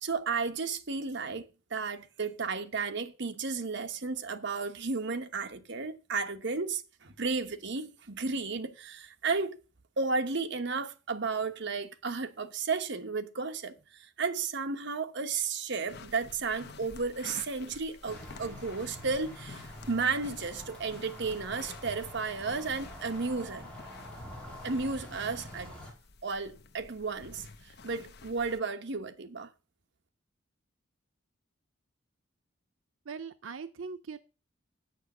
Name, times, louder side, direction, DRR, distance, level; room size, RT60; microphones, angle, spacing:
voice 1, 0.0-9.6 10.0-23.7 24.6-25.7 26.2-29.5, right 4 dB, 65° right, 1.1 m, -33 dB
sound 1, 15.9-28.6, left 4 dB, 55° left, 0.9 m, -50 dB
sound 2, 18.1-25.9, left 1 dB, 5° left, 4.2 m, -46 dB
voice 2, 33.1-34.2, right 5 dB, 90° right, 0.6 m, -40 dB
9.1 x 6.7 x 6.1 m
head